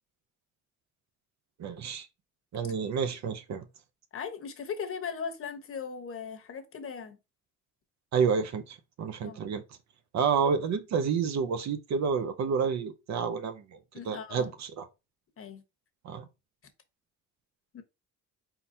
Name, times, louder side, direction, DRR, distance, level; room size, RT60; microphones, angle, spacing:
voice 1, 1.6-2.1 2.5-3.6 8.1-9.6 10.1-13.8 14.0-14.9 16.0-16.2, right 6 dB, 60° right, 0.8 m, -29 dB
voice 2, 4.1-7.2 9.2-9.4 13.9-14.5 15.4-15.6 17.7-17.8, left 6 dB, 45° left, 1.0 m, -38 dB
4.3 x 3.9 x 2.7 m
cardioid pair, 100°, 31 cm